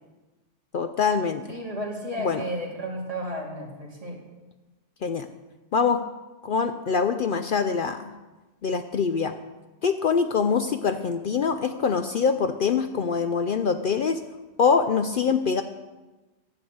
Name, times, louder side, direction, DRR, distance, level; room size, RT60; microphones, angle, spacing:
voice 1, 0.7-1.4 2.2-2.4 5.0-5.3 5.7-6.0 6.4-8.1 8.6-9.3 9.8-14.2 14.6-15.6, left 5 dB, 55° left, 8 dB, 0.6 m, -24 dB
voice 2, 1.5-4.2, equal, 30° right, -2 dB, 2.5 m, -33 dB
10.5 x 6.8 x 7.9 m, 1.1 s
omnidirectional pair, 1.2 m